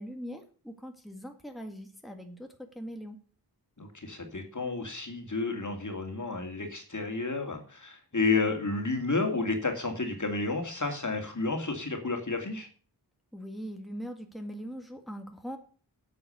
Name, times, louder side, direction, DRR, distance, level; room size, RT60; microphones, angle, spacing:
voice 1, 0.0-3.2 13.3-15.6, equal, ahead, 4 dB, 1.8 m, -41 dB
voice 2, 3.8-12.7, left 3 dB, 45° left, 4 dB, 2.5 m, -31 dB
8.6 x 7.8 x 6.9 m, 0.42 s
wide cardioid pair, 65°, 40 cm